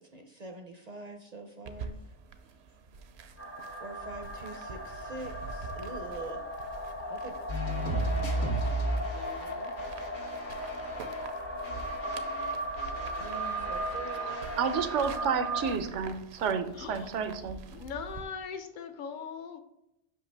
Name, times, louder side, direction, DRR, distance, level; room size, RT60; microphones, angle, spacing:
voice 1, 0.0-2.1 2.4-2.5 3.0-3.1 3.8-6.4 7.0-8.7 13.2-14.6, right 2 dB, 45° right, 4 dB, 0.6 m, -45 dB
sound 1, 1.7-18.2, right 4 dB, 70° right, 0.8 m, -46 dB
sound 2, 3.4-15.8, right 1 dB, 20° left, 0.4 m, -37 dB
sound 3, 7.5-11.3 11.6-15.0, right 1 dB, 80° left, 1.8 m, -35 dB
voice 2, 9.1-9.7 16.8-17.1 17.7-19.6, left 6 dB, 50° left, 7 dB, 0.8 m, -41 dB
voice 3, 14.2-17.6, right 6 dB, 85° right, 10 dB, 1.0 m, -31 dB
5.7 x 5.5 x 3.3 m, 0.85 s
omnidirectional pair, 1.2 m